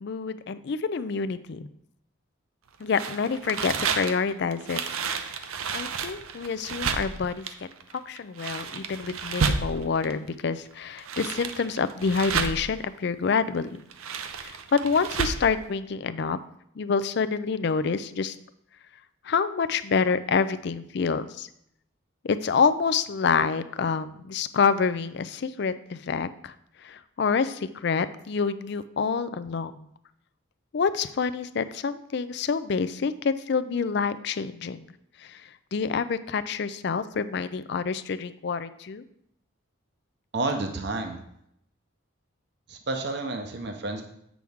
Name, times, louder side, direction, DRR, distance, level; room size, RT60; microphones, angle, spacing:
voice 1, 0.0-1.7 2.8-4.8 5.7-7.4 7.9-13.8 14.4-16.4 16.8-18.4 19.2-21.5 22.2-26.5 26.8-29.9 30.7-34.8 35.2-35.4 35.7-39.0, left 5 dB, 55° left, 13 dB, 0.4 m, -27 dB
sound 1, 2.9-10.1 10.8-12.8 13.7-15.5, right 5 dB, 85° right, 0.6 m, -31 dB
voice 2, 40.3-41.2 42.7-44.0, right 2 dB, 55° right, 5 dB, 0.8 m, -30 dB
8.4 x 6.1 x 3.5 m, 0.74 s
head